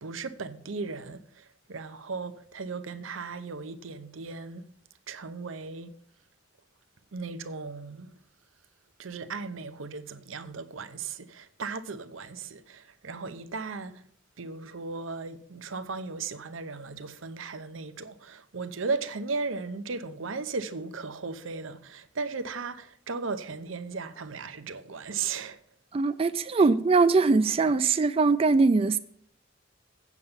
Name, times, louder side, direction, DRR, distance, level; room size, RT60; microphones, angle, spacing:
voice 1, 0.0-4.7 5.1-5.9 7.1-8.1 9.0-14.0 14.4-25.6, right 4 dB, 85° right, 0.7 m, -36 dB
voice 2, 25.9-29.0, right 4 dB, 30° right, 0.3 m, -22 dB
8.3 x 6.9 x 7.1 m
head